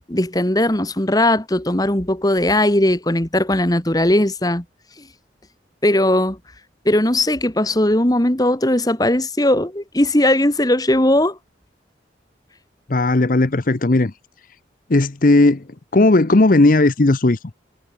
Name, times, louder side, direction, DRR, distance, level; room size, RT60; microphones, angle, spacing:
voice 1, 0.0-4.6 5.8-6.4 6.9-11.4, left 1 dB, 20° left, 1.8 m, -18 dB
voice 2, 12.9-14.1 14.9-15.6 15.9-17.4, left 2 dB, 50° left, 0.8 m, -15 dB
head